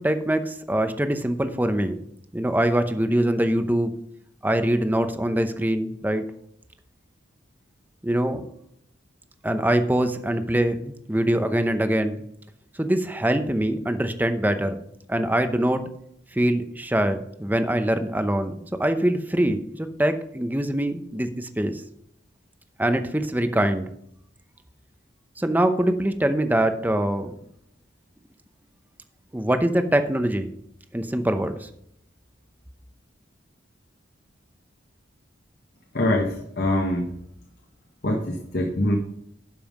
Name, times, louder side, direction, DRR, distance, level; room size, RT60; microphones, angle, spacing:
voice 1, 0.0-2.0 2.3-3.9 4.4-6.2 8.0-8.4 9.4-12.2 12.8-14.7 15.1-15.8 16.3-21.8 22.8-23.9 25.4-27.3 29.3-30.5 30.9-31.7, right 1 dB, 10° right, 8 dB, 0.7 m, -23 dB
voice 2, 35.9-37.1 38.0-39.0, left 1 dB, 55° left, 2 dB, 1.3 m, -24 dB
12.0 x 5.5 x 5.3 m, 0.72 s
head